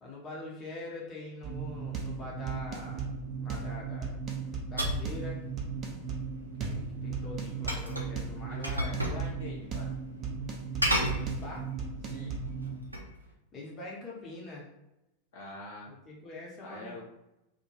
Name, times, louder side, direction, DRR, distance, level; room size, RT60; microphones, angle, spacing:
voice 1, 0.0-4.2 4.7-5.4 6.6-8.8 11.1-11.7 13.5-14.7 15.9-17.0, left 2 dB, 25° left, -3 dB, 0.8 m, -44 dB
sound 1, 1.4-12.8, right 5 dB, 30° right, 0.5 m, -36 dB
sound 2, 4.8-5.1 7.7-8.2 8.6-9.2 9.5-9.6 10.8-11.7 12.3-13.1, equal, 85° right, 0.4 m, -31 dB
voice 2, 8.5-9.9 12.0-12.4 15.3-15.9 16.6-17.0, left 2 dB, 50° left, -3 dB, 0.6 m, -43 dB
2.2 x 2.1 x 3.1 m, 0.91 s
figure-of-eight pair, 90°, 0 cm